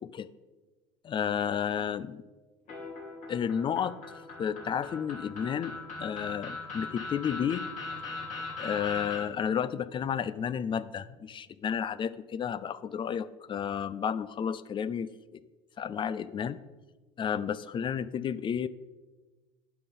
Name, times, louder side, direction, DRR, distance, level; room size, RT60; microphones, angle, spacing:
voice 1, 1.0-2.2 3.3-3.9 4.4-5.7 6.0-7.6 8.6-15.1 15.8-16.6 17.2-18.7, left 8 dB, 30° left, 16 dB, 0.5 m, -31 dB
sound 1, 2.7-9.2, left 3 dB, 50° left, 2.7 m, -40 dB
10.0 x 5.4 x 5.5 m, 1.3 s
figure-of-eight pair, 65°, 17 cm